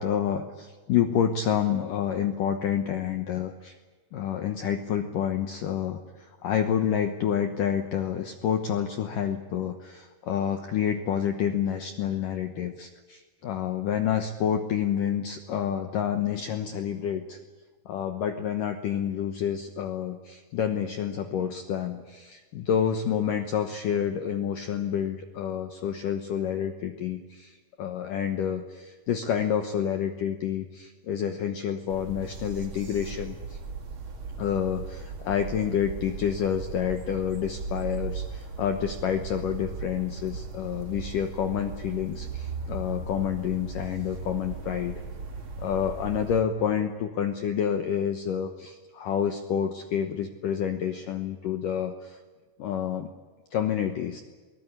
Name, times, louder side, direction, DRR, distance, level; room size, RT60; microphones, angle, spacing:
voice 1, 0.0-3.8 4.1-17.4 17.9-33.6 34.4-45.0 45.6-52.2 52.6-53.1 53.5-54.2, left 9 dB, 80° left, 7 dB, 1.9 m, -28 dB
sound 1, 31.9-46.4, right 4 dB, 45° right, 1.8 m, -37 dB
22.0 x 19.0 x 9.8 m, 1.4 s
omnidirectional pair, 5.5 m